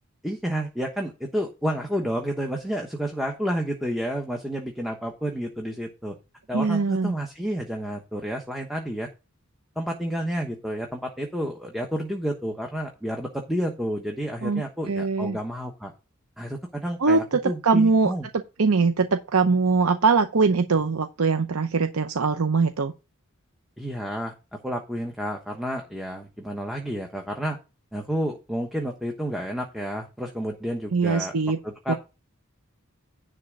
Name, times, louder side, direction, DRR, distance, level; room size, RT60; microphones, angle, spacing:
voice 1, 0.2-6.2 6.5-9.1 9.8-15.9 16.4-18.3 23.8-24.3 24.6-27.6 27.9-31.3 31.6-31.9, equal, ahead, 1.1 m, -30 dB
voice 2, 6.5-7.1 14.4-15.4 17.0-18.1 18.6-22.9 30.9-31.6 31.9-32.0, right 4 dB, 80° right, 0.7 m, -22 dB
10.5 x 3.6 x 6.5 m
head